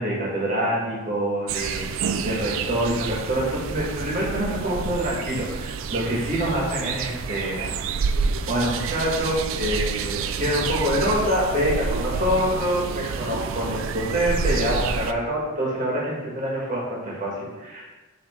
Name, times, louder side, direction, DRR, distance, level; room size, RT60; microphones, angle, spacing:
voice 1, 0.0-7.8 8.5-17.8, equal, 40° right, -5 dB, 1.8 m, -26 dB
sound 1, 1.5-15.1, right 5 dB, 65° right, 0.3 m, -29 dB
8.4 x 3.5 x 3.7 m, 1.2 s
head